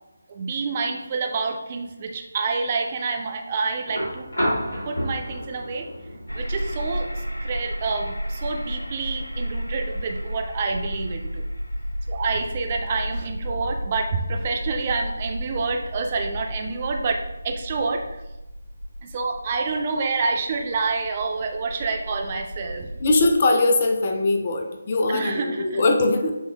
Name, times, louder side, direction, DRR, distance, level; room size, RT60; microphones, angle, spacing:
voice 1, 0.3-4.3 4.9-5.9 6.3-11.4 12.1-18.2 19.0-22.9 25.1-25.8, right 4 dB, 30° right, 3 dB, 0.4 m, -28 dB
sound 1, 3.9-11.9 13.3-13.4, equal, 65° left, 1.6 m, -33 dB
sound 2, 6.3-23.3, equal, 85° left, 0.5 m, -33 dB
voice 2, 23.0-26.4, left 2 dB, 35° left, 3 dB, 0.5 m, -21 dB
7.2 x 3.0 x 2.3 m, 0.99 s
figure-of-eight pair, 155°, 0 cm